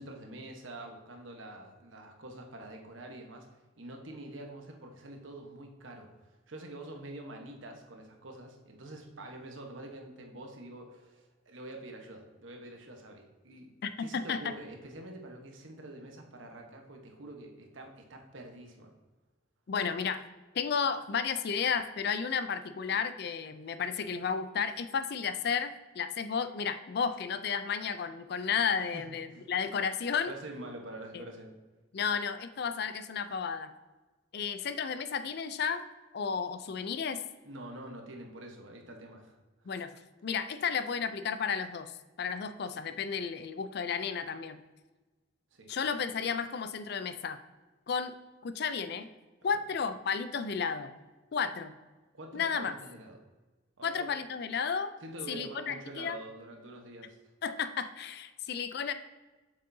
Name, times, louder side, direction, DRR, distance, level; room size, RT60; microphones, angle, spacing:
voice 1, 0.0-18.9 28.9-29.4 30.3-31.5 37.4-39.3 45.5-45.7 49.4-49.6 52.1-53.2 53.8-54.1 55.0-57.2, right 1 dB, 85° right, 2 dB, 1.1 m, -46 dB
voice 2, 13.8-14.5 19.7-20.2 20.5-30.3 31.1-31.2 31.9-33.7 34.3-35.8 36.1-37.2 39.7-44.6 45.7-47.4 47.9-48.1 48.4-49.1 49.4-50.9 51.3-51.8 52.3-52.7 53.8-54.9 55.3-56.2 57.4-58.9, left 6 dB, 55° left, 11 dB, 0.4 m, -33 dB
7.2 x 6.6 x 2.7 m, 1.2 s
head